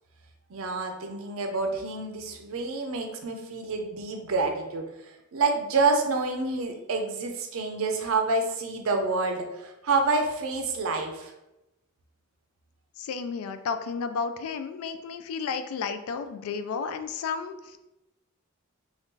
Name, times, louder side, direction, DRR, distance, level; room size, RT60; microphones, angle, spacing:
voice 1, 0.5-4.9 5.3-11.3, right 3 dB, 70° right, 4 dB, 0.5 m, -28 dB
voice 2, 13.0-17.8, left 5 dB, 80° left, 9 dB, 0.3 m, -32 dB
2.7 x 2.3 x 3.5 m, 0.95 s
head